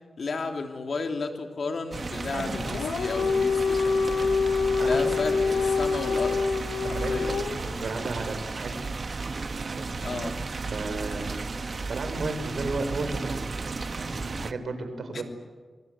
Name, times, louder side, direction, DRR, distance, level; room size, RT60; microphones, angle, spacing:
voice 1, 0.2-4.3 4.8-6.4 6.9-7.4 10.0-10.3 15.1-15.2, left 4 dB, 60° left, 4 dB, 2.9 m, -33 dB
sound 1, 1.9-14.5, right 4 dB, 50° right, 1.3 m, -34 dB
Dog, 2.6-7.8, left 5 dB, 80° left, 0.9 m, -26 dB
voice 2, 4.8-5.2 6.8-8.8 9.7-10.2 10.7-13.4 14.0-15.2, right 3 dB, 70° right, 8 dB, 4.6 m, -34 dB
26.0 x 24.0 x 8.3 m, 1.4 s
wide cardioid pair, 85°, 0 cm